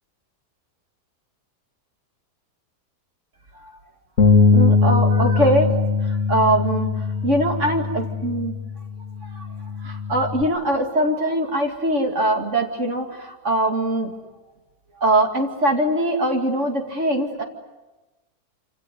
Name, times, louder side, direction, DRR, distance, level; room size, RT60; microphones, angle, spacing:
Bass guitar, 4.2-10.4, left 5 dB, 50° left, 1.8 m, -21 dB
voice 1, 4.5-8.6 9.2-9.5 9.8-14.1 15.0-17.4, right 1 dB, 45° right, 2 dB, 2.7 m, -22 dB
27.0 x 26.5 x 8.2 m, 1.1 s
omnidirectional pair, 1.7 m